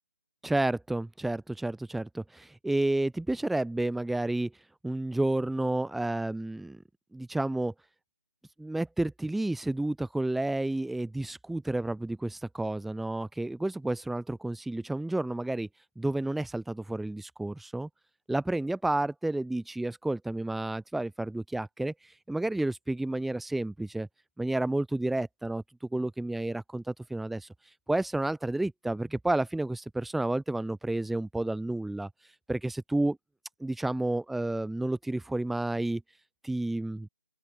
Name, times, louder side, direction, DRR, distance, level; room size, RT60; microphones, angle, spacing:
voice 1, 0.4-4.5 4.8-6.8 7.1-7.7 8.6-15.7 16.0-17.9 18.3-24.1 24.4-25.6 25.9-27.5 27.9-32.1 32.5-33.2 33.6-36.0 36.4-37.1, right 2 dB, ahead, 2.6 m, -31 dB
open air
figure-of-eight pair, 155°, 10 cm